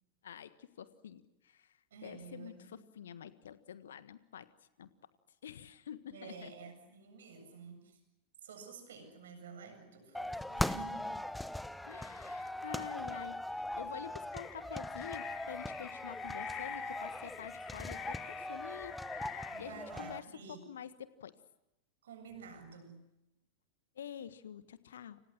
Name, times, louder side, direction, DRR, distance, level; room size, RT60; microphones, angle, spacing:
voice 1, 0.2-4.5 4.8-5.1 5.4-6.5 11.9-21.3 23.9-25.2, left 9 dB, 65° left, 14 dB, 1.5 m, -48 dB
voice 2, 1.9-2.8 6.1-8.0 8.4-11.3 19.5-20.6 22.0-23.1, right 5 dB, 65° right, 6 dB, 7.8 m, -51 dB
sound 1, 10.1-20.2, left 1 dB, 5° left, 0.9 m, -40 dB
sound 2, 14.3-19.7, left 9 dB, 35° left, 4.1 m, -47 dB
30.0 x 27.0 x 6.1 m, 0.90 s
figure-of-eight pair, 90°, 0 cm